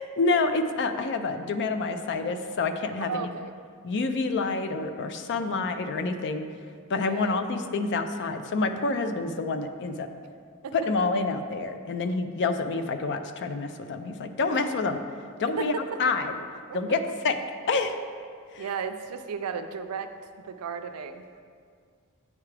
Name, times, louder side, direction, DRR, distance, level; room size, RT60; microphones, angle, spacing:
voice 1, 0.0-3.3 3.8-6.5 6.9-10.1 10.7-15.0 15.4-16.3 16.7-17.4 17.7-18.0 18.5-18.6, left 3 dB, 55° left, 8 dB, 0.4 m, -28 dB
voice 2, 3.0-3.5 5.2-5.6 7.0-7.4 10.6-10.7 14.5-14.6 15.6-16.0 16.7-16.8 18.6-20.1 20.4-21.2, right 5 dB, 75° right, 9 dB, 0.4 m, -35 dB
8.5 x 4.7 x 3.3 m, 2.1 s
head